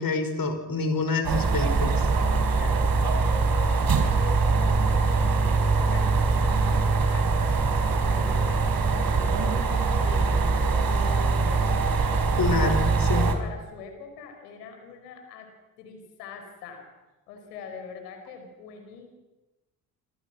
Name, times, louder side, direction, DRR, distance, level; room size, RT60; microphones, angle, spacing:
voice 1, 0.0-2.1 12.4-13.3, left 3 dB, 45° left, 7 dB, 5.8 m, -27 dB
sound 1, 1.2-13.3, right 4 dB, 50° right, 4.6 m, -23 dB
voice 2, 2.4-3.9 4.1-8.7 9.1-12.2 13.1-15.5 15.8-16.9 17.3-19.1, left 5 dB, 80° left, 5 dB, 5.4 m, -43 dB
27.5 x 27.0 x 6.3 m, 1.1 s
figure-of-eight pair, 45°, 47 cm